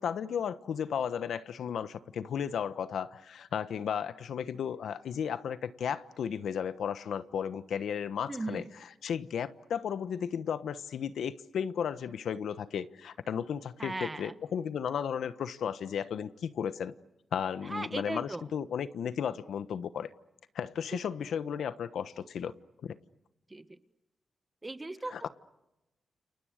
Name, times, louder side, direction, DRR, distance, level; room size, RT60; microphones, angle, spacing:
voice 1, 0.0-8.6 9.0-16.9 17.3-20.1 20.5-22.5 22.8-23.0 25.1-25.3, left 8 dB, 90° left, 1.1 m, -34 dB
voice 2, 8.3-8.6 13.8-14.3 17.6-18.4 23.5-23.6 24.6-25.3, right 2 dB, 20° right, 1.7 m, -37 dB
29.5 x 29.0 x 6.6 m
wide cardioid pair, 105°, 0 cm